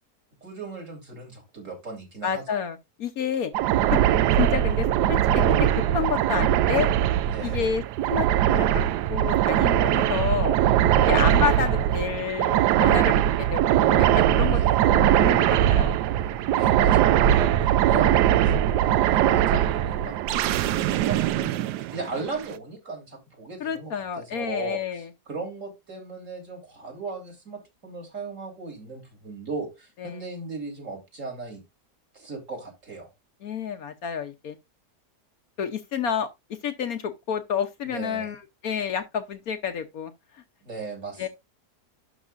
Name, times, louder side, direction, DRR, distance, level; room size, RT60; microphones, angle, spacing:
voice 1, 0.4-2.6 7.3-7.6 11.0-11.3 14.5-14.8 16.6-31.6 32.1-33.1 37.8-38.3 40.6-41.3, right 4 dB, 45° right, 3.4 m, -36 dB
voice 2, 2.2-3.5 3.9-4.0 4.4-5.5 5.9-6.9 7.4-7.8 8.1-8.8 9.1-10.5 11.0-16.0 23.6-25.1 30.0-30.2 33.4-34.6 35.6-36.3 36.6-40.1 41.2-41.3, left 7 dB, 60° left, 1.2 m, -29 dB
sound 1, 3.5-22.4, right 11 dB, 75° right, 1.1 m, -21 dB
11.0 x 6.0 x 2.5 m
omnidirectional pair, 1.8 m